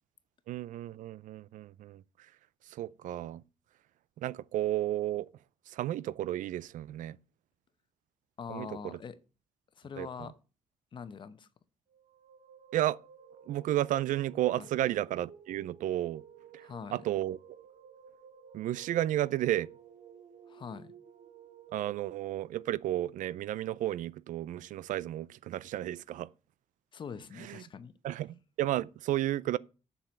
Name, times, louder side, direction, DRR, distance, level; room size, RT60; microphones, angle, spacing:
voice 1, 0.5-2.0 2.7-3.4 4.2-5.3 5.7-7.2 8.5-9.0 10.0-10.1 12.7-13.0 13.5-16.2 16.5-17.4 18.5-19.7 21.7-26.3 27.4-27.6 28.0-29.6, right 13 dB, 85° right, 0.5 m, -32 dB
voice 2, 8.4-9.2 9.8-10.3 10.9-11.5 14.5-14.7 16.6-17.0 20.5-20.9 26.9-27.9, left 6 dB, 40° left, 0.9 m, -43 dB
sound 1, 11.9-22.1, right 8 dB, 55° right, 1.7 m, -54 dB
7.5 x 6.9 x 8.2 m
cardioid pair, 165°, 13 cm